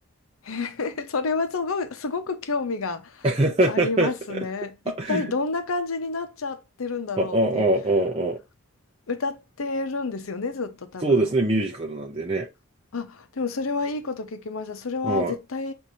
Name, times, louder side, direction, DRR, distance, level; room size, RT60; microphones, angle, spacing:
voice 1, 0.4-3.3 3.7-7.7 9.1-11.3 12.9-15.7, left 4 dB, 85° left, 0.7 m, -29 dB
voice 2, 3.2-4.1 4.4-4.5 4.9-5.2 7.2-8.4 11.0-12.5 15.0-15.3, right 2 dB, 25° right, 0.5 m, -23 dB
5.9 x 2.7 x 2.7 m
head